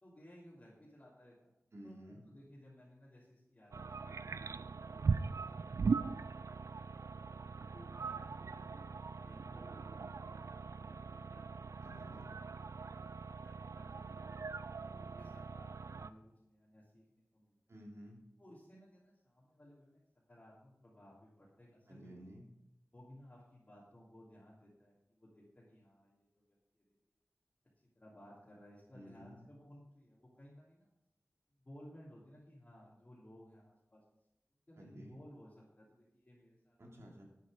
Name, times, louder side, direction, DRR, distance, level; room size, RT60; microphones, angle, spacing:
voice 1, 0.0-1.5 1.8-5.8 7.7-12.1 13.4-14.3 14.8-17.5 18.4-22.1 22.9-26.9 27.8-30.9 31.6-34.0 34.7-36.8, equal, 30° left, -8 dB, 3.2 m, -59 dB
voice 2, 1.7-2.2 11.8-12.3 17.7-18.2 21.9-22.4 28.9-29.4 34.8-35.2 36.8-37.2, equal, 65° right, -1 dB, 3.1 m, -53 dB
sound 1, 3.7-16.1, right 5 dB, 85° right, 0.4 m, -40 dB
11.0 x 8.5 x 5.2 m, 0.86 s
wide cardioid pair, 75°, 5 cm